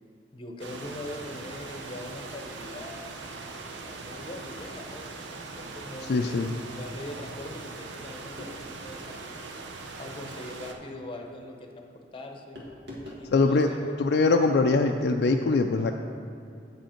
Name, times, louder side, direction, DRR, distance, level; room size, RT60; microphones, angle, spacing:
voice 1, 0.3-3.1 3.8-5.0 5.4-9.4 10.0-12.6 13.2-14.0, left 1 dB, 30° left, 3 dB, 0.8 m, -41 dB
sound 1, 0.6-10.7, right 3 dB, 85° right, 0.7 m, -41 dB
voice 2, 6.1-6.5 13.3-13.7 14.0-15.9, left 3 dB, 60° left, 4 dB, 0.4 m, -22 dB
sound 2, 8.4-9.0 10.3-10.6 12.6-13.3, left 1 dB, 70° right, 1.6 m, -43 dB
7.8 x 7.8 x 4.4 m, 2.5 s
head